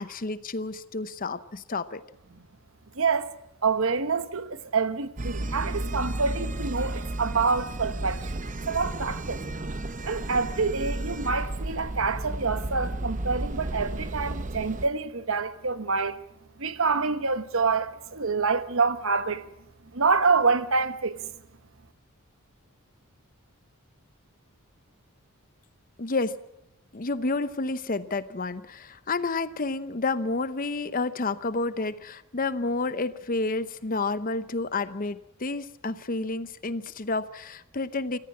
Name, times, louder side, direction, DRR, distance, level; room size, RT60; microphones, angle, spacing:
voice 1, 0.0-2.0 26.0-26.4 26.9-38.2, left 3 dB, 40° left, 0.8 m, -30 dB
voice 2, 3.0-3.3 3.6-9.4 10.0-16.2 16.6-19.4 19.9-21.2, right 4 dB, 65° right, 1.1 m, -27 dB
sound 1, 5.2-14.9, right 2 dB, 35° right, 0.8 m, -33 dB
26.5 x 14.5 x 8.6 m
head